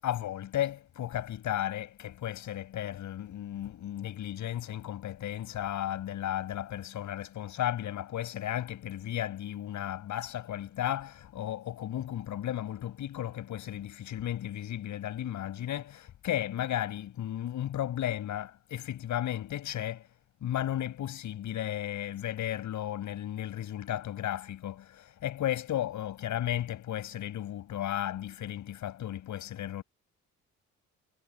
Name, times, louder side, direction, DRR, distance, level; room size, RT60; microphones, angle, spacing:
voice 1, 0.0-29.8, left 12 dB, 75° left, 7.4 m, -34 dB
cardioid pair, 90°, 30 cm